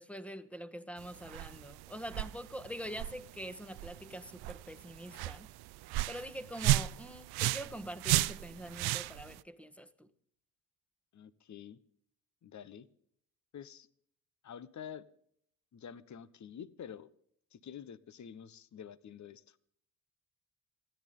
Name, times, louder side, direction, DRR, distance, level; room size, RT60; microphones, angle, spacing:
voice 1, 0.0-5.5 5.9-10.1, equal, 5° left, 1.4 m, -44 dB
sound 1, 1.0-9.4, right 17 dB, 65° right, 0.6 m, -35 dB
voice 2, 11.1-11.8 12.4-12.9 13.5-13.9 14.4-15.0 15.7-17.1 17.5-19.6, left 8 dB, 45° left, 1.1 m, -48 dB
28.5 x 10.5 x 3.8 m
hypercardioid pair, 60°, 41 cm